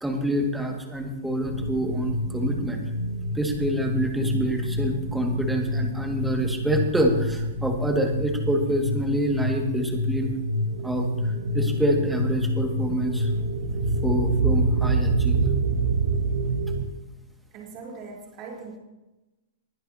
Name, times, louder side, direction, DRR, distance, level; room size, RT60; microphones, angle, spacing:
voice 1, 0.0-2.8 3.3-10.3 10.8-13.3 14.0-15.5, right 1 dB, 5° right, 1 dB, 2.1 m, -26 dB
sound 1, 1.4-16.9, right 1 dB, 75° right, 1.6 m, -27 dB
voice 2, 17.5-18.8, right 4 dB, 35° right, -3 dB, 4.0 m, -40 dB
21.0 x 11.0 x 2.9 m, 1.0 s
hypercardioid pair, 140°, 0 cm